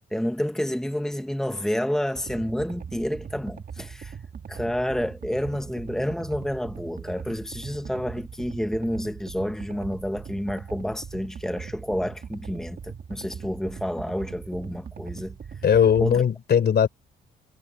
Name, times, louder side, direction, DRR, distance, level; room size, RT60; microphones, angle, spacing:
voice 1, 0.1-4.2 4.5-15.4 16.0-16.2, equal, ahead, 1.5 m, -29 dB
sound 1, 2.2-16.2, right 7 dB, 50° right, 2.4 m, -40 dB
voice 2, 15.6-16.9, left 8 dB, 55° left, 4.2 m, -19 dB
cardioid pair, 90°, 20 cm